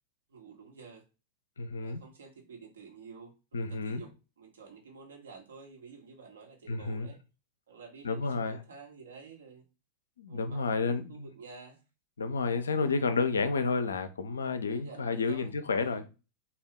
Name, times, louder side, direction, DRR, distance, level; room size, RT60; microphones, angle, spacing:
voice 1, 0.3-1.0 1.8-4.1 4.4-7.2 7.7-9.6 10.3-11.8 12.7-13.1 14.7-16.1, right 5 dB, 65° right, 1.1 m, -50 dB
voice 2, 1.6-2.0 3.5-4.0 6.7-7.1 8.0-8.6 10.2-11.3 12.2-16.0, left 4 dB, 70° left, 0.4 m, -31 dB
3.5 x 2.4 x 3.5 m
figure-of-eight pair, 90°, 0 cm